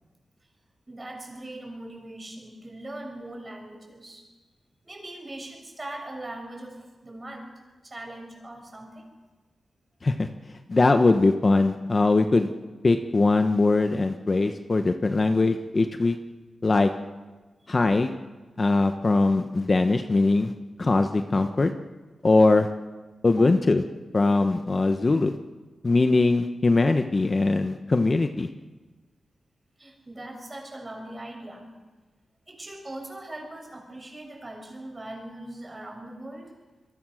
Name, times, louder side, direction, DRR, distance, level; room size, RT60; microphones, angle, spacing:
voice 1, 0.9-4.2 4.8-6.8 7.0-7.5 7.8-9.0 23.4-23.5 29.8-31.7 32.5-36.5, right 1 dB, 25° right, 2 dB, 6.7 m, -40 dB
voice 2, 10.7-12.5 12.8-16.1 16.6-16.9 17.7-18.1 18.6-20.5 20.8-21.7 22.2-22.7 23.2-23.8 24.1-25.4 25.8-28.5, left 3 dB, 35° left, 7 dB, 1.1 m, -21 dB
27.0 x 22.5 x 6.5 m, 1.2 s
wide cardioid pair, 115°, 0 cm